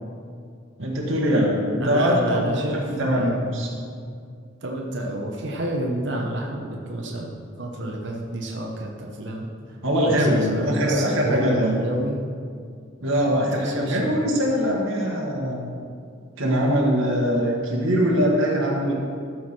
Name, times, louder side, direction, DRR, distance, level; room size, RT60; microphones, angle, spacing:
voice 1, 0.8-3.7 9.8-11.8 13.0-15.7 16.4-18.9, equal, 80° right, -2 dB, 1.6 m, -22 dB
voice 2, 1.8-3.3 4.6-9.5 10.0-12.2 13.2-14.3, right 1 dB, 60° right, 0 dB, 0.9 m, -29 dB
13.0 x 4.7 x 6.0 m, 2.3 s
head